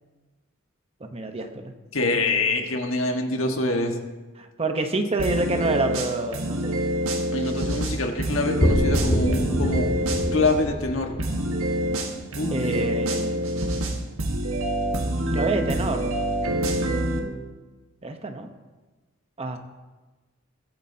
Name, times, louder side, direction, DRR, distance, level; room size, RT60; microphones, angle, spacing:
voice 1, 1.1-1.7 4.4-6.8 12.5-13.6 15.3-16.2 18.0-18.5 19.4-19.6, right 2 dB, 30° right, 6 dB, 0.9 m, -27 dB
voice 2, 1.9-4.0 7.3-9.9 10.3-11.1 12.4-12.6, left 2 dB, 70° left, 3 dB, 1.5 m, -25 dB
sound 1, 5.2-10.5 11.2-17.2, right 1 dB, 90° right, 1.5 m, -26 dB
sound 2, 8.6-12.3, equal, 35° left, 2.1 m, -26 dB
22.0 x 8.4 x 2.8 m, 1.2 s
head